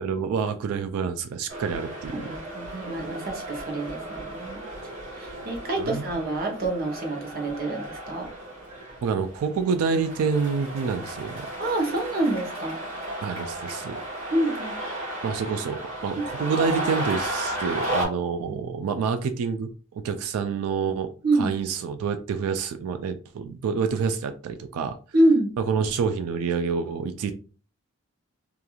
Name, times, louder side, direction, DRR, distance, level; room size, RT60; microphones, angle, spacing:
voice 1, 0.0-2.3 5.8-6.1 9.0-11.5 13.2-14.0 15.2-25.0 25.6-27.3, right 5 dB, 75° right, 9 dB, 0.3 m, -28 dB
sound 1, 1.5-18.0, right 1 dB, 60° right, 1.2 m, -34 dB
voice 2, 2.1-4.6 5.2-8.3 11.6-12.7 14.3-14.7 21.2-21.5 25.1-25.5, right 1 dB, 40° right, 1 dB, 0.7 m, -26 dB
3.0 x 2.4 x 2.3 m, 0.36 s
head